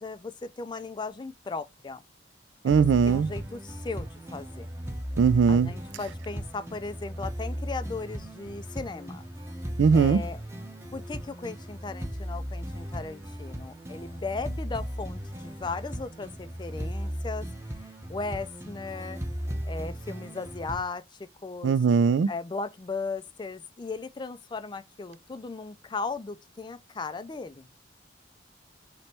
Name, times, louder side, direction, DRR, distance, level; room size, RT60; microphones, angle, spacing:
voice 1, 0.0-2.0 2.6-4.7 5.5-9.3 9.9-10.4 10.9-17.5 18.1-19.2 19.7-21.8 22.3-27.7, left 4 dB, 25° left, 0.3 m, -37 dB
voice 2, 2.6-3.3 5.2-5.7 9.8-10.2 21.6-22.3, right 6 dB, 80° right, 0.3 m, -20 dB
sound 1, 2.7-20.8, equal, 15° right, 0.8 m, -36 dB
3.3 x 3.0 x 4.2 m
head